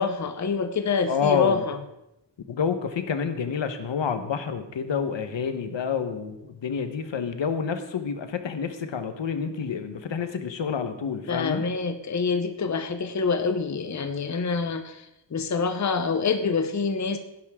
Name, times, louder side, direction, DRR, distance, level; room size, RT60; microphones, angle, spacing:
voice 1, 0.0-1.8 11.3-15.1 15.3-17.2, left 5 dB, 40° left, 8 dB, 0.8 m, -26 dB
voice 2, 1.1-1.6 2.5-11.6, left 6 dB, 80° left, 8 dB, 1.2 m, -28 dB
17.0 x 10.5 x 3.7 m, 0.90 s
wide cardioid pair, 175°, 44 cm